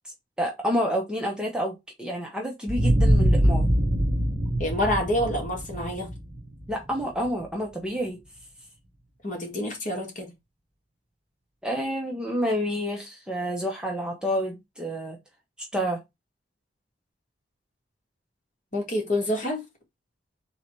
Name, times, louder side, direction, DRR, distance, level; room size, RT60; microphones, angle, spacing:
voice 1, 0.4-3.7 6.7-8.2 11.6-15.2 15.7-16.0, equal, 5° right, 0.8 m, -29 dB
sound 1, 2.7-7.3, equal, 30° right, 0.9 m, -23 dB
voice 2, 4.6-6.1 9.2-10.3 18.7-19.6, left 1 dB, 40° left, 1.6 m, -27 dB
3.9 x 2.9 x 4.5 m
head